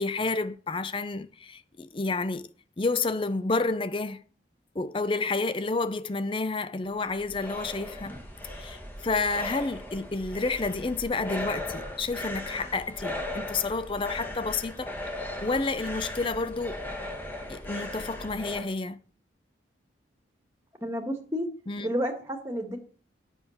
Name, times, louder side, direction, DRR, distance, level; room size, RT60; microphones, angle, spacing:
voice 1, 0.0-2.5 2.8-4.2 4.7-8.2 8.6-14.9 15.4-16.9 17.5-19.0 21.7-21.9, left 3 dB, 25° left, 0.5 m, -30 dB
sound 1, 6.8-18.7, left 1 dB, 10° left, 1.7 m, -38 dB
voice 2, 20.8-21.5 21.8-22.8, equal, 15° right, 1.8 m, -30 dB
9.3 x 6.2 x 7.2 m
head